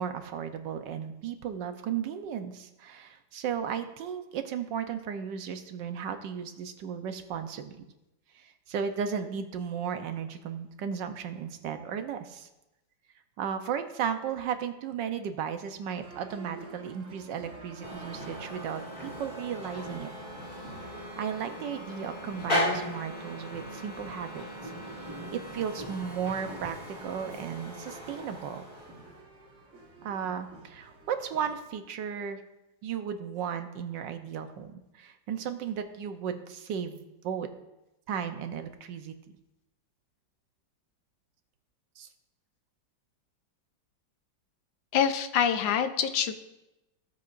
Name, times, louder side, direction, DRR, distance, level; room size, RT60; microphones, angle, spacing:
voice 1, 0.0-7.8 8.3-12.5 13.4-20.1 20.8-24.7 25.3-28.6 30.0-32.4 32.8-37.5 38.1-39.1 42.0-42.1, right 7 dB, 75° right, 8 dB, 1.4 m, -35 dB
sound 1, 16.0-31.8, right 2 dB, 40° right, 1.8 m, -50 dB
sound 2, 17.8-29.2, left 1 dB, 25° left, 2.5 m, -37 dB
voice 2, 44.9-46.3, left 8 dB, 80° left, 9 dB, 1.4 m, -25 dB
16.0 x 8.4 x 2.5 m, 0.95 s
omnidirectional pair, 2.0 m